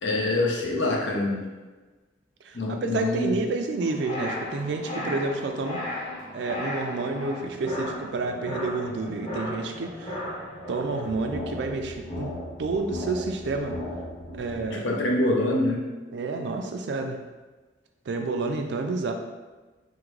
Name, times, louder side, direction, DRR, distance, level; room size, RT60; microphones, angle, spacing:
voice 1, 0.0-1.4 2.5-3.3 14.7-15.8, left 2 dB, 80° left, -1 dB, 0.6 m, -25 dB
voice 2, 2.4-5.8 6.3-10.2 10.7-12.3 12.6-13.7 14.3-14.9 16.1-17.2 18.1-19.1, right 3 dB, 70° right, 5 dB, 0.3 m, -29 dB
sound 1, 3.8-14.7, left 1 dB, 30° left, 0.8 m, -36 dB
3.5 x 2.1 x 3.1 m, 1.2 s
head